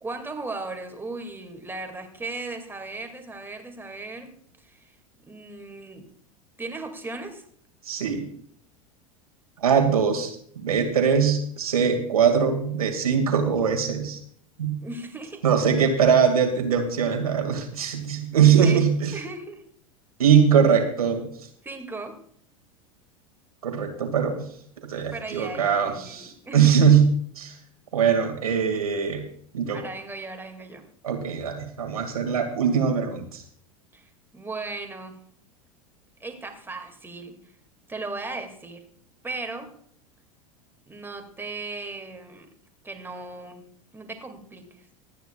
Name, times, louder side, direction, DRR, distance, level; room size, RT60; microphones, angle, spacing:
voice 1, 0.0-4.3 4.6-5.0 5.3-6.1 6.6-7.5 14.8-15.4 17.9-18.0 18.6-19.6 21.6-22.2 24.9-26.8 29.7-30.8 33.9-35.2 36.2-37.5 37.9-38.8 39.2-39.7 40.9-42.5 42.8-43.6 43.9-44.9, right 3 dB, 10° right, 4 dB, 2.3 m, -37 dB
voice 2, 7.8-8.2 9.6-14.2 14.6-14.7 15.4-19.1 20.2-21.2 23.6-24.5 24.8-27.1 27.4-27.5 27.9-29.2 29.5-29.8 31.0-33.4, right 7 dB, 75° right, 3 dB, 2.2 m, -21 dB
25.0 x 9.2 x 2.4 m, 0.62 s
figure-of-eight pair, 80°, 19 cm